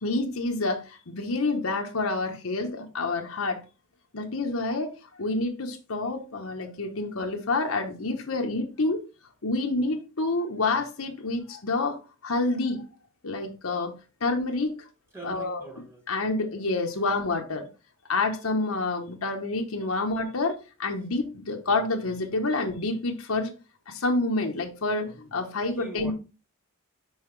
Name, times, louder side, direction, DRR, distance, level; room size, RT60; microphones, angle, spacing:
voice 1, 0.0-3.6 4.1-4.9 5.2-9.0 9.4-12.9 13.2-13.9 14.2-14.9 15.2-15.6 16.1-17.7 18.1-23.5 23.9-26.1, left 3 dB, 75° left, 1.0 m, -28 dB
voice 2, 15.1-16.0 17.0-17.1 22.5-22.6 25.8-26.1, right 3 dB, 10° right, 1.3 m, -42 dB
5.6 x 5.5 x 3.2 m
head